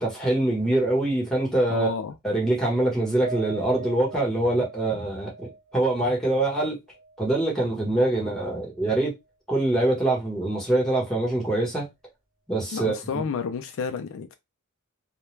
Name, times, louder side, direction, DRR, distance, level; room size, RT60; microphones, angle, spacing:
voice 1, 0.0-1.9 2.2-6.8 7.2-9.1 9.5-11.9 12.5-13.2, right 2 dB, 5° left, 1.0 m, -24 dB
voice 2, 1.7-2.1 12.7-14.3, left 5 dB, 60° left, 0.4 m, -30 dB
Piano, 3.2-7.7 8.1-8.2 8.6-8.8, right 4 dB, 55° right, 1.2 m, -42 dB
2.3 x 2.2 x 3.1 m
head